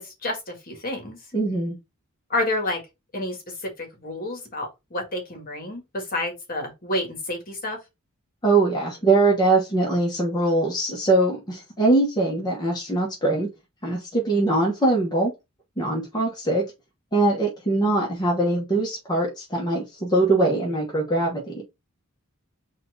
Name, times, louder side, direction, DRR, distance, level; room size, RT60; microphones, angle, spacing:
voice 1, 0.0-1.2 2.3-2.8 3.1-7.8, left 1 dB, 40° left, 1.6 m, -29 dB
voice 2, 1.3-1.7 8.4-13.5 13.8-15.3 15.8-16.6 17.1-21.6, right 2 dB, 20° left, 1.1 m, -22 dB
4.3 x 2.5 x 4.6 m
head